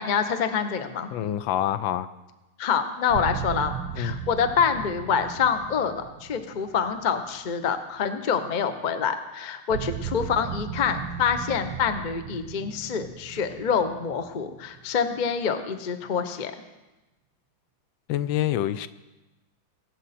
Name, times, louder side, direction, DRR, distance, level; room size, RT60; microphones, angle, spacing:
voice 1, 0.0-1.1 2.6-16.5, left 6 dB, 60° left, 8 dB, 0.5 m, -26 dB
voice 2, 1.1-2.1 3.9-4.2 18.1-18.9, left 12 dB, 80° left, 14 dB, 1.3 m, -26 dB
sound 1, 3.1-8.1 9.7-15.4, right 8 dB, 85° right, 1.5 m, -37 dB
23.0 x 7.9 x 4.2 m, 1.1 s
omnidirectional pair, 2.2 m